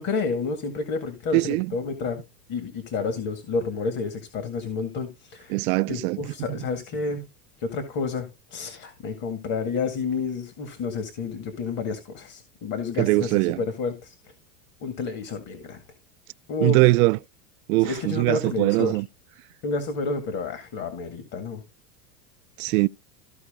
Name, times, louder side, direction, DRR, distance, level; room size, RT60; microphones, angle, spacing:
voice 1, 0.0-2.2 2.5-7.3 7.6-8.3 8.5-14.2 14.8-15.8 16.5-16.8 17.8-19.0 19.6-21.6, left 4 dB, 40° left, 2.0 m, -30 dB
voice 2, 1.3-1.7 5.5-6.2 6.5-6.6 13.0-13.6 16.6-17.2 17.7-19.0 22.6-22.9, right 21 dB, 65° right, 0.5 m, -21 dB
14.5 x 4.9 x 3.7 m
supercardioid pair, 120°, 47 cm